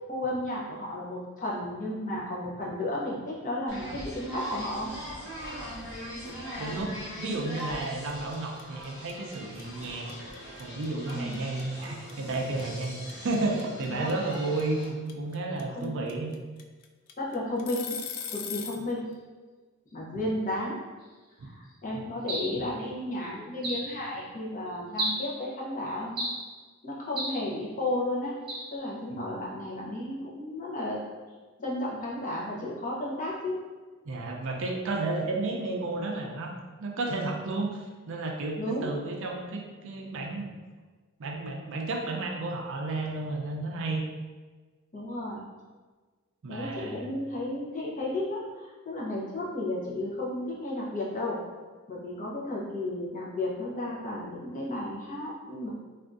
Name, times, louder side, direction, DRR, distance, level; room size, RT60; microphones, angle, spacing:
voice 1, 0.1-4.9 11.1-11.4 13.9-14.1 15.7-16.0 17.2-18.0 18.3-19.1 19.9-20.8 21.4-26.2 26.8-28.3 28.7-31.0 31.6-33.6 38.6-38.9 44.9-45.4 46.5-51.4 51.9-55.7, left 1 dB, 35° left, -5 dB, 0.7 m, -33 dB
sound 1, 3.7-14.9, equal, 55° left, 1.2 m, -40 dB
voice 2, 6.6-10.1 10.6-16.3 21.9-22.0 22.6-22.7 29.1-29.2 34.0-40.5 41.2-44.0 46.4-47.0, right 2 dB, 60° right, 1 dB, 0.4 m, -32 dB
sound 2, 7.6-7.8 8.1-18.9, left 7 dB, 90° left, 0.3 m, -39 dB
sound 3, 22.3-22.6 23.6-23.9 25.0-25.3 26.2-26.5 27.2-27.4 28.5-28.7, right 1 dB, 25° right, 0.9 m, -32 dB
3.4 x 2.4 x 2.5 m, 1.4 s
head